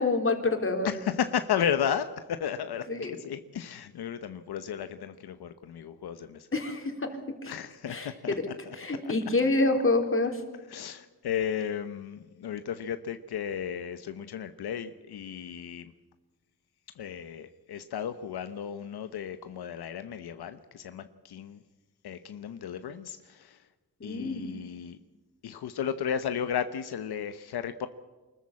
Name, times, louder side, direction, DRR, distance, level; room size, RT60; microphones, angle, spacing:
voice 1, 0.0-0.9 2.9-3.2 6.5-7.1 7.4-7.5 7.9-8.4 8.8-10.4 24.0-24.5, left 2 dB, 35° left, 4 dB, 3.9 m, -27 dB
voice 2, 0.8-2.9 3.2-6.5 7.5-8.3 8.7-8.8 9.0-9.1 10.7-15.9 17.0-21.6 22.0-23.6 24.0-25.0 25.4-27.9, left 8 dB, 85° left, 10 dB, 1.0 m, -34 dB
24.5 x 14.0 x 8.6 m, 1.3 s
cardioid pair, 80°, 38 cm